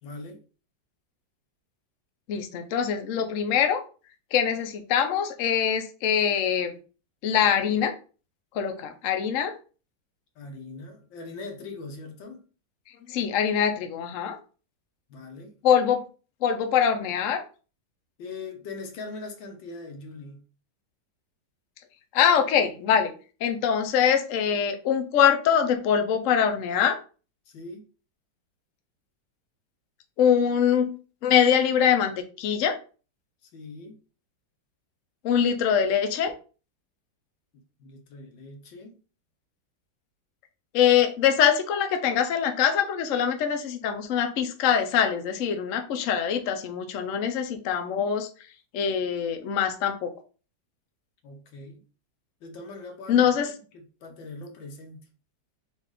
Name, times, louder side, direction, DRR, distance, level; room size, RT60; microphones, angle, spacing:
voice 1, 0.0-0.4 10.4-12.4 15.1-15.5 18.2-20.4 27.5-27.8 33.4-34.0 37.5-39.0 51.2-51.8 52.4-55.0, left 3 dB, 85° left, 1.7 m, -41 dB
voice 2, 2.3-3.8 4.3-6.7 7.2-7.9 8.5-9.6 13.1-14.4 15.6-16.0 16.4-17.4 22.1-23.1 23.4-27.0 30.2-31.0 31.2-32.8 35.2-36.3 40.7-48.3 48.7-50.1 53.1-53.5, left 8 dB, 65° left, 0.8 m, -23 dB
4.2 x 2.5 x 4.8 m
omnidirectional pair, 2.0 m